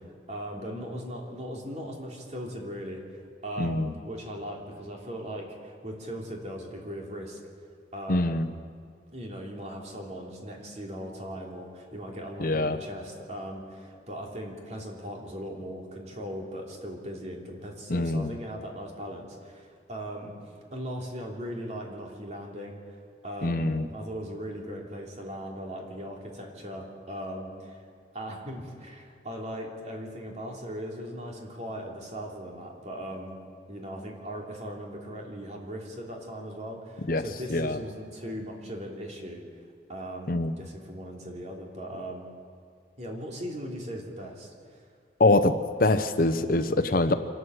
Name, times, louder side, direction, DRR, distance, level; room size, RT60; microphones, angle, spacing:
voice 1, 0.3-3.0 3.4-7.4 7.9-8.4 9.1-27.8 28.1-33.4 33.7-39.4 39.9-42.2 43.0-44.8, equal, 40° right, 0 dB, 3.1 m, -39 dB
voice 2, 3.6-3.9 8.1-8.5 12.4-12.8 17.9-18.3 23.4-23.9 37.1-37.2 37.5-37.8 40.3-40.5 45.2-45.5 45.8-47.1, left 2 dB, 50° left, 9 dB, 0.8 m, -24 dB
26.0 x 12.5 x 8.0 m, 2.1 s
head